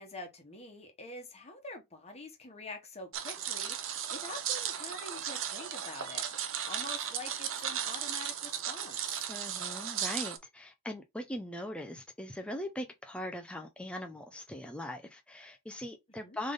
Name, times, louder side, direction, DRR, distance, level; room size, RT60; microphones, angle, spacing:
voice 1, 0.0-6.3 6.7-9.3 16.2-16.4, left 2 dB, 30° left, 1.1 m, -46 dB
sound 1, 3.1-10.4, right 9 dB, 60° right, 0.7 m, -36 dB
voice 2, 9.3-16.5, left 1 dB, 5° left, 0.4 m, -40 dB
3.8 x 3.2 x 3.8 m
head